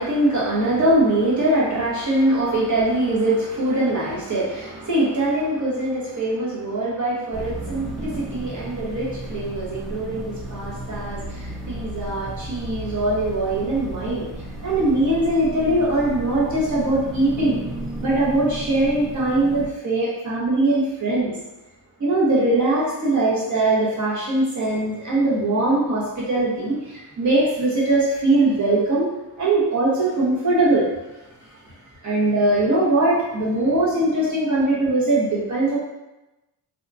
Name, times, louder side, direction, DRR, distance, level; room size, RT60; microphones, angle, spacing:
voice 1, 0.0-14.3 14.6-17.6 18.0-21.4 22.0-29.1 29.4-30.9 32.0-35.8, right 2 dB, 40° right, -5 dB, 1.1 m, -21 dB
sound 1, 7.3-19.7, right 1 dB, ahead, 0.4 m, -34 dB
2.7 x 2.4 x 2.6 m, 1.0 s
cardioid pair, 80°, 47 cm